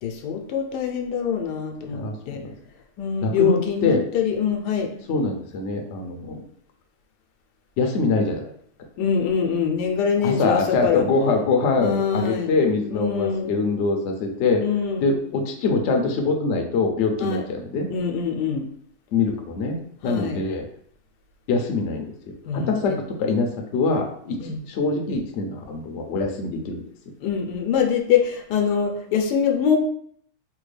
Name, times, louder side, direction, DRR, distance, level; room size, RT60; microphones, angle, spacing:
voice 1, 0.0-2.4 3.0-4.9 9.0-11.0 11.8-12.5 12.9-13.6 14.6-15.1 17.2-17.4 17.9-18.7 20.0-20.4 22.4-23.0 24.4-24.6 27.2-29.8, left 7 dB, 85° left, 3 dB, 1.2 m, -24 dB
voice 2, 1.8-2.5 3.2-4.0 5.1-6.4 7.8-8.4 10.2-14.6 15.0-17.9 19.1-19.8 20.0-20.6 21.5-22.1 22.5-22.9 23.2-26.8, left 3 dB, 65° left, 3 dB, 0.7 m, -24 dB
3.4 x 2.2 x 3.2 m, 0.65 s
omnidirectional pair, 1.7 m